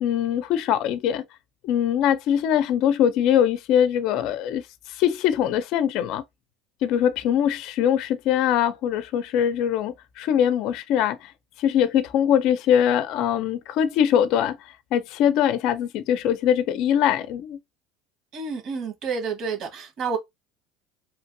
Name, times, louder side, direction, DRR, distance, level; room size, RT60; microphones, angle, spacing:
voice 1, 0.0-1.2 1.6-6.2 6.8-11.3 11.6-17.6, left 9 dB, 65° left, 0.4 m, -22 dB
voice 2, 18.3-20.2, right 5 dB, 55° right, 1.3 m, -29 dB
3.1 x 2.5 x 2.6 m
supercardioid pair, 95°, 0 cm